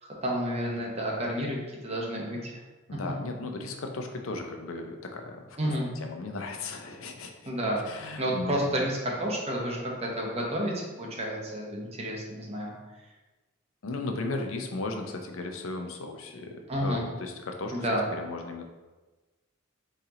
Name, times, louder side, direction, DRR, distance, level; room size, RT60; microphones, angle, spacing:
voice 1, 0.2-2.6 2.9-3.0 5.6-5.9 7.5-7.8 8.2-12.7 16.7-17.1 17.7-18.0, equal, 30° right, -2 dB, 0.9 m, -30 dB
voice 2, 2.9-5.7 6.0-7.5 7.8-8.6 13.8-18.6, left 3 dB, 85° left, 4 dB, 0.6 m, -36 dB
4.2 x 2.9 x 3.8 m, 1.2 s
head